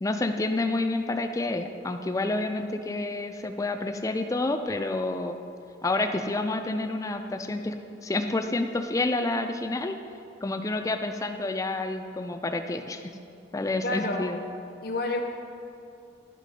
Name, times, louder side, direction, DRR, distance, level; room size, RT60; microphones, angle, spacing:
voice 1, 0.0-5.4 5.8-7.8 8.0-10.0 10.4-13.0 13.5-14.4, left 2 dB, 20° left, 6 dB, 0.4 m, -29 dB
voice 2, 13.8-14.2 14.8-15.2, left 2 dB, 60° left, 3 dB, 0.8 m, -29 dB
10.5 x 3.7 x 5.2 m, 2.5 s
head